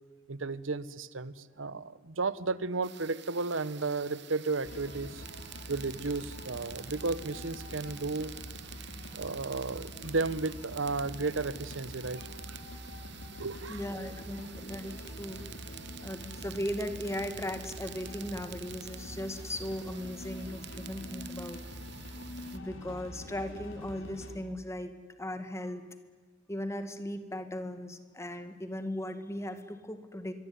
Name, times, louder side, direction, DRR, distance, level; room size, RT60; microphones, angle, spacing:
voice 1, 0.3-5.2 5.7-8.3 8.8-12.6 13.4-13.8, right 3 dB, 85° right, 1.1 m, -34 dB
sound 1, 2.8-22.6, right 13 dB, 60° right, 1.0 m, -49 dB
sound 2, 4.6-24.3, left 1 dB, 85° left, 4.5 m, -45 dB
voice 2, 13.7-15.5 16.0-21.6 22.5-24.9 25.2-25.8 26.5-30.3, left 1 dB, 15° left, 2.1 m, -37 dB
25.0 x 23.0 x 9.8 m
head